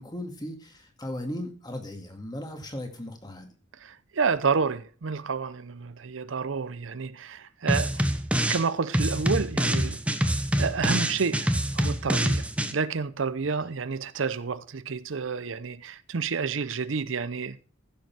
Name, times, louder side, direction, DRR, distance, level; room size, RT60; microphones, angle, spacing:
voice 1, 0.0-3.5, left 1 dB, 20° left, 2.0 m, -37 dB
voice 2, 3.8-8.0 8.3-10.0 10.6-11.5 11.7-12.4 12.7-17.6, right 5 dB, 75° right, 0.6 m, -29 dB
sound 1, 7.7-8.6 8.9-12.7, right 1 dB, 5° right, 0.9 m, -25 dB
15.0 x 6.8 x 4.6 m
head